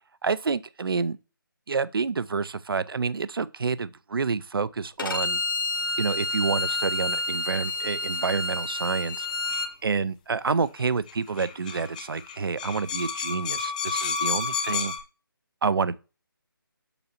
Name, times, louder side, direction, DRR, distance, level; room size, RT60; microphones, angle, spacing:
voice 1, 0.2-1.2 1.7-5.4 6.0-9.3 9.8-14.9 15.6-16.0, right 5 dB, 75° right, 0.5 m, -28 dB
Bowed string instrument, 5.0-9.7, left 3 dB, 60° left, 1.2 m, -29 dB
sound 1, 9.5-9.7 10.8-10.9 11.1-11.2 11.4-15.0, left 5 dB, 20° left, 0.5 m, -30 dB
6.9 x 5.3 x 2.8 m
figure-of-eight pair, 155°, 12 cm